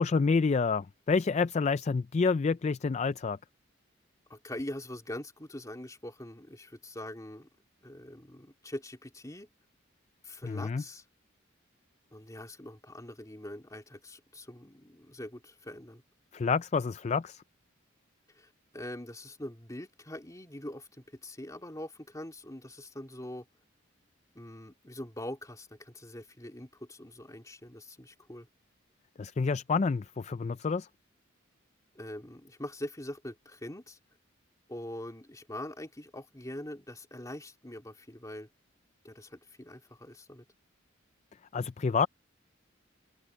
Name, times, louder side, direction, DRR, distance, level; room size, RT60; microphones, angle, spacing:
voice 1, 0.0-3.4 10.4-10.8 16.3-17.4 29.2-30.9 41.5-42.1, left 4 dB, 35° left, 0.3 m, -28 dB
voice 2, 4.3-7.5 7.8-9.5 10.2-11.0 12.1-16.0 18.3-23.4 24.3-28.5 31.9-34.0 34.7-38.5 39.0-40.4, left 1 dB, 15° left, 3.1 m, -43 dB
head